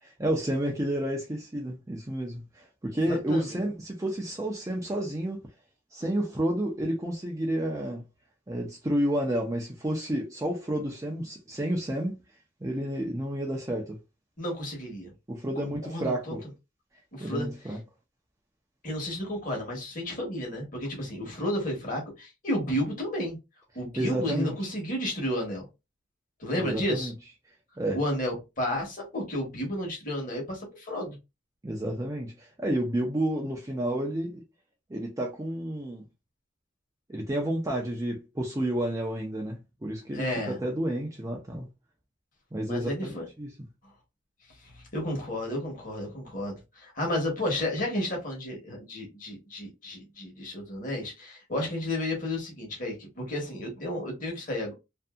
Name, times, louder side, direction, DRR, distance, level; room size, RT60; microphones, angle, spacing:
voice 1, 0.0-5.5 5.9-8.0 8.5-12.2 12.6-14.0 15.3-16.4 17.2-17.8 24.0-24.5 26.6-27.1 27.8-28.0 31.6-34.4 34.9-36.0 37.1-41.7 42.5-43.5, right 1 dB, 15° right, 0.4 m, -30 dB
voice 2, 3.1-3.6 14.4-15.1 15.5-16.3 17.1-17.8 18.8-23.4 23.7-25.7 26.4-27.1 27.9-31.2 40.1-40.6 42.7-43.3 44.6-54.7, left 1 dB, 40° left, 1.1 m, -32 dB
2.6 x 2.6 x 2.3 m
head